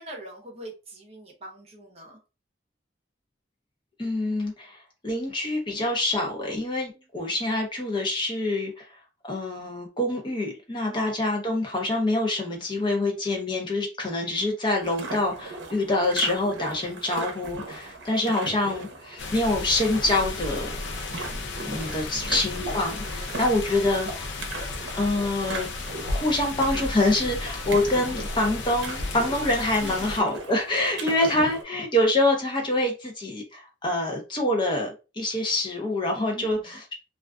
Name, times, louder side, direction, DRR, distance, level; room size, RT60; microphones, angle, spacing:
voice 1, 0.0-2.2 10.9-11.0 22.1-22.4 23.0-23.4 29.8-30.2 30.7-31.0 36.3-36.8, right 1 dB, 35° right, 0.7 m, -43 dB
voice 2, 4.0-8.8 9.3-20.7 21.3-24.4 24.9-25.7 26.1-34.9 35.2-36.9, left 2 dB, 25° left, 0.6 m, -26 dB
sound 1, 14.8-31.6, right 3 dB, 80° right, 0.6 m, -39 dB
sound 2, 19.2-30.2, left 3 dB, 85° left, 0.4 m, -34 dB
2.4 x 2.3 x 2.2 m
head